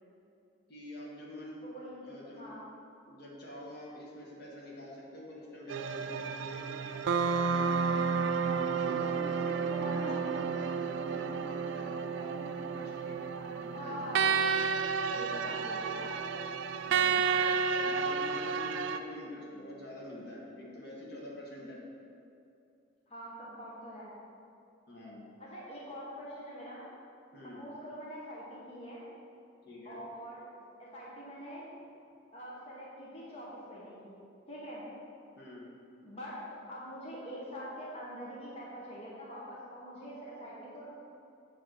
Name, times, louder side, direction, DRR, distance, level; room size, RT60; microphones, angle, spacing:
voice 1, 0.7-1.7 2.0-2.5 3.1-8.2 8.7-13.2 13.6-14.2 16.9-17.2 17.7-21.8 24.9-25.2 27.3-27.6 29.6-30.0 35.4-35.7, left 1 dB, 55° left, -4 dB, 1.1 m, -46 dB
voice 2, 1.6-2.1 2.4-2.7 8.6-8.7 8.9-9.1 9.7-10.2 13.4-13.5 13.7-14.4 15.1-16.4 23.1-24.1 25.4-26.8 27.6-29.0 29.8-30.4 30.8-31.7 32.3-34.2 34.5-34.8 36.0-36.4 36.7-40.9, equal, 30° left, -6 dB, 1.0 m, -44 dB
sound 1, 5.7-19.0, right 5 dB, 70° right, 0.3 m, -31 dB
7.7 x 2.9 x 6.1 m, 2.6 s
head